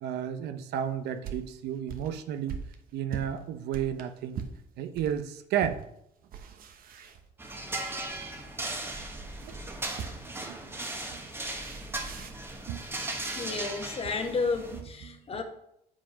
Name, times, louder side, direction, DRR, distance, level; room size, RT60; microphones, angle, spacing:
voice 1, 0.0-2.6 2.9-4.4 4.8-5.8 9.4-9.8 10.5-10.6 11.1-11.2 12.7-12.8 13.5-13.6 14.0-14.1 14.7-15.2, right 9 dB, 80° right, 0.8 m, -33 dB
sound 1, 0.7-5.2 5.6-5.8 6.2-7.7 9.2-10.4 11.6-12.5, right 7 dB, 60° right, 1.0 m, -42 dB
sound 2, 7.4-14.8, right 2 dB, 15° right, 1.1 m, -37 dB
voice 2, 13.3-15.4, left 4 dB, 35° left, 1.2 m, -32 dB
7.5 x 5.1 x 5.1 m
cardioid pair, 110°, 17 cm